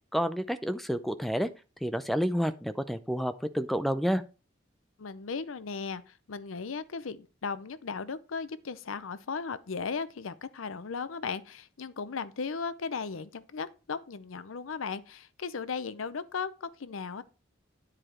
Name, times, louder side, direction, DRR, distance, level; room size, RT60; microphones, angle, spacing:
voice 1, 0.1-1.5 1.8-4.2, equal, ahead, 0.5 m, -29 dB
voice 2, 5.0-17.2, left 5 dB, 85° left, 0.6 m, -36 dB
9.9 x 4.9 x 4.3 m
head